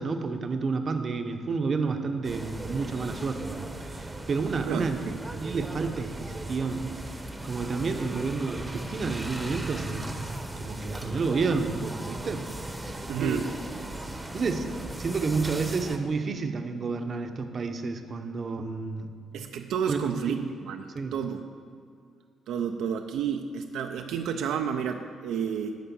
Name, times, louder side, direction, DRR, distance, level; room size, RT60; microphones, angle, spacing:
voice 1, 0.0-5.0 5.3-6.9 7.4-10.1 10.5-12.4 12.8-13.5 14.3-14.7 15.0-19.1 19.9-20.6 20.9-21.2, right 4 dB, 45° right, 6 dB, 0.7 m, -30 dB
sound 1, 2.2-16.0, right 1 dB, 10° right, 0.8 m, -37 dB
voice 2, 4.7-5.2 13.1-13.5 19.3-20.9 21.1-21.4 22.5-25.8, right 7 dB, 85° right, 5 dB, 0.4 m, -31 dB
10.0 x 3.7 x 7.0 m, 2.3 s
cardioid pair, 90°, 0 cm